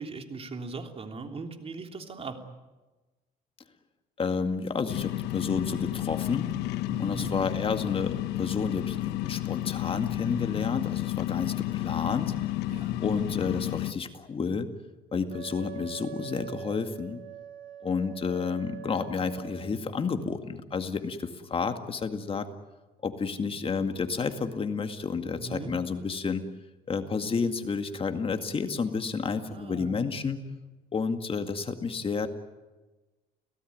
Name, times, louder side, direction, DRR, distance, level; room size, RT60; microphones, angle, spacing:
voice 1, 0.0-2.4 6.9-7.3 12.7-13.0 25.4-25.7 29.5-30.0, right 3 dB, 35° right, 5 dB, 3.3 m, -39 dB
voice 2, 4.2-6.5 7.0-12.3 13.0-14.7 15.1-17.2 17.8-22.5 23.0-26.4 26.9-30.4 30.9-32.3, left 5 dB, 35° left, 7 dB, 2.1 m, -30 dB
sound 1, 4.9-13.9, left 16 dB, 90° left, 1.1 m, -31 dB
Wind instrument woodwind instrument, 15.3-19.8, right 10 dB, 85° right, 4.2 m, -43 dB
30.0 x 17.5 x 9.5 m, 1.2 s
cardioid pair, 110°, 17 cm